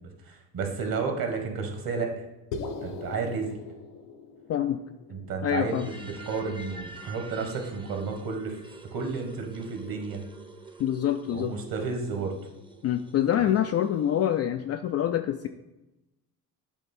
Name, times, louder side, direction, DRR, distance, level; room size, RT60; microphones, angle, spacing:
voice 1, 0.2-2.2 2.8-3.5 5.1-8.6 8.9-10.2 11.3-12.3, right 4 dB, 45° right, 4 dB, 1.6 m, -32 dB
sound 1, 2.5-6.9, left 4 dB, 80° left, 0.8 m, -41 dB
voice 2, 4.5-4.8 5.4-5.9 10.8-11.5 12.8-15.5, left 10 dB, 35° left, 7 dB, 0.4 m, -26 dB
sound 2, 5.6-14.4, right 3 dB, 10° right, 0.8 m, -48 dB
8.1 x 3.2 x 4.4 m, 0.97 s
hypercardioid pair, 55°, 48 cm